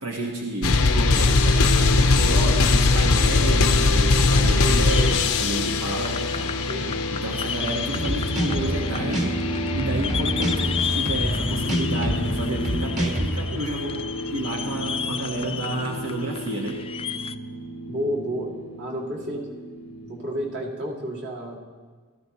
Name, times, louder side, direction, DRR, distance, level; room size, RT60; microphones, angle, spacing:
voice 1, 0.0-6.5 7.1-9.5 9.7-14.0 14.3-16.8, right 2 dB, 80° right, -1 dB, 1.4 m, -30 dB
sound 1, 0.6-20.5, left 3 dB, 75° left, 0.8 m, -24 dB
sound 2, 4.8-17.4, left 8 dB, 25° left, 0.3 m, -33 dB
voice 2, 6.6-7.0 17.9-18.5 18.8-19.5 20.0-21.6, equal, 55° right, -3 dB, 2.3 m, -30 dB
sound 3, 7.9-13.3, equal, 35° right, 1.6 m, -27 dB
17.5 x 14.0 x 3.0 m, 1.5 s
head